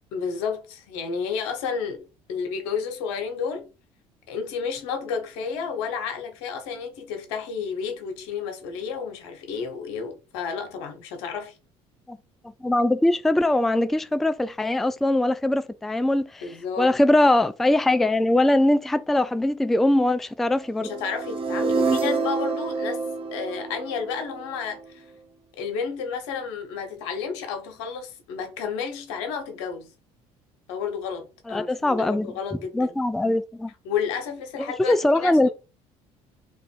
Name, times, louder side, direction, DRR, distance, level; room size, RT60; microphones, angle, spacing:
voice 1, 0.1-3.7 4.3-11.6 16.4-16.9 20.8-23.0 23.3-25.0 25.6-29.9 30.7-32.9 33.8-35.5, left 6 dB, 85° left, 1.1 m, -31 dB
voice 2, 12.6-16.5 16.8-20.9 31.5-32.3 32.7-33.7 34.8-35.5, left 1 dB, ahead, 0.3 m, -21 dB
sound 1, 20.8-24.9, right 4 dB, 40° right, 0.9 m, -27 dB
3.0 x 2.9 x 4.4 m
supercardioid pair, 75°, 15 cm